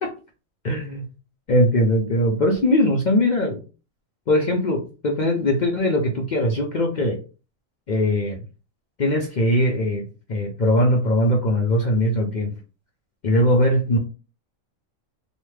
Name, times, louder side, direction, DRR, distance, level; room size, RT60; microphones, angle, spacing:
voice 1, 0.6-1.1 1.5-3.6 4.3-7.2 7.9-8.4 9.0-12.6 13.2-14.0, left 1 dB, 60° left, 0 dB, 0.5 m, -21 dB
3.1 x 2.1 x 3.2 m, 0.33 s
omnidirectional pair, 1.4 m